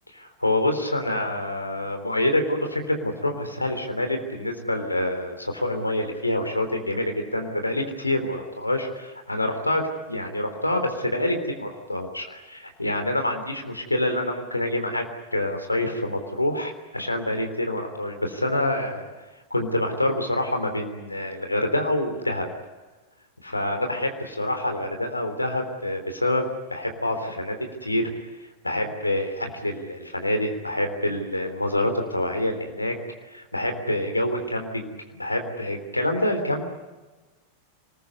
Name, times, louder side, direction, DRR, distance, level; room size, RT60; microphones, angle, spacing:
voice 1, 0.1-9.8 10.1-15.0 15.3-19.1 19.5-22.5 23.4-28.0 28.6-33.0 33.3-36.7, left 1 dB, 85° left, 5 dB, 3.5 m, -26 dB
26.5 x 20.5 x 9.6 m, 1.2 s
figure-of-eight pair, 90°, 0 cm